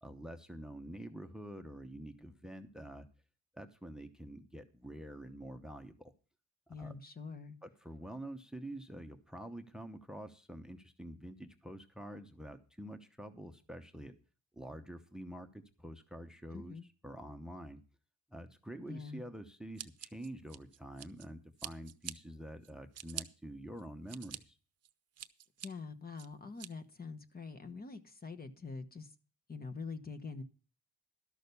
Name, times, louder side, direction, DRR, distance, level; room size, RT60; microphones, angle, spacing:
voice 1, 0.0-3.1 3.5-6.1 6.7-6.9 7.6-14.2 14.6-16.8 17.0-17.8 18.3-24.6, right 1 dB, ahead, 9 dB, 0.9 m, -47 dB
voice 2, 6.7-7.6 16.5-16.9 18.7-19.2 25.6-29.1 29.5-30.4, left 4 dB, 30° left, 10 dB, 1.1 m, -45 dB
Scissors, 19.8-21.3 21.6-22.1 22.6-23.2 23.8-24.4 24.8-25.7 26.2-26.7, right 10 dB, 55° right, 0.8 m, -45 dB
12.5 x 6.3 x 6.9 m, 0.38 s
cardioid pair, 90°, 30 cm